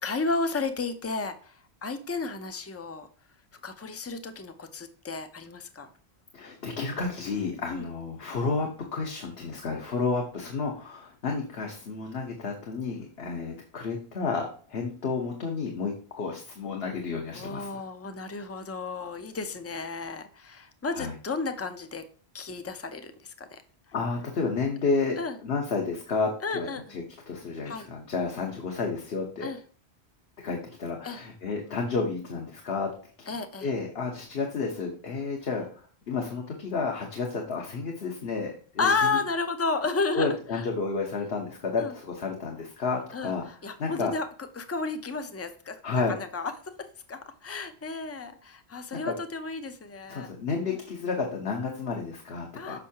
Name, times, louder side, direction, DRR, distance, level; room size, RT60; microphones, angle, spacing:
voice 1, 0.0-3.1 3.6-5.9 7.7-7.8 17.3-22.0 22.3-23.6 25.2-25.4 26.4-26.8 27.7-27.9 29.4-29.6 31.0-31.2 33.3-33.7 38.8-40.3 41.8-41.9 43.1-44.3 44.6-50.3 52.5-52.8, left 4 dB, 20° left, 9 dB, 0.4 m, -32 dB
voice 2, 6.3-17.8 20.9-21.2 23.9-29.5 30.4-39.2 40.1-44.1 45.8-46.2 48.9-49.2 50.1-52.8, left 4 dB, 65° left, 0 dB, 1.2 m, -31 dB
6.9 x 5.5 x 2.8 m, 0.43 s
omnidirectional pair, 1.1 m